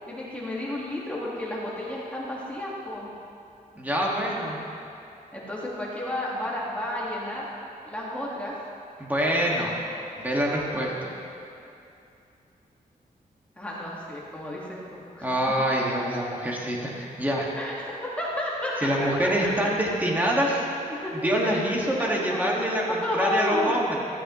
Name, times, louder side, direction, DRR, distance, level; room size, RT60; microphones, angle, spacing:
voice 1, 0.1-3.1 5.3-7.5 7.8-8.5 13.6-15.3 17.6-19.5 20.9-21.1 21.4-21.6 22.0-22.5 22.9-23.7, left 1 dB, 10° left, -6 dB, 1.7 m, -32 dB
voice 2, 3.7-4.6 9.0-9.8 10.2-11.1 15.2-17.5 18.8-20.7 21.2-24.0, equal, 10° right, -3 dB, 1.8 m, -25 dB
15.0 x 13.5 x 3.1 m, 2.6 s
wide cardioid pair, 160°, 15 cm